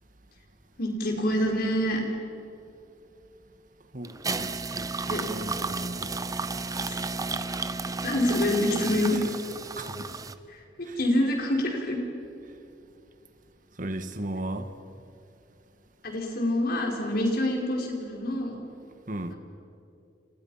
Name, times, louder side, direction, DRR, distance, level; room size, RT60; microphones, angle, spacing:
voice 1, 0.8-2.0 5.1-5.2 6.7-7.0 8.0-9.2 10.5-12.0 16.0-18.6 19.3-19.4, left 1 dB, 55° left, 5.1 m, -26 dB
voice 2, 3.9-6.1 9.1-9.2 9.7-10.1 10.9-11.0 13.8-14.7 19.1-19.3, right 1 dB, 45° right, 1.7 m, -36 dB
sound 1, 4.0-10.3, right 3 dB, 20° right, 0.8 m, -32 dB
29.5 x 29.0 x 5.8 m
head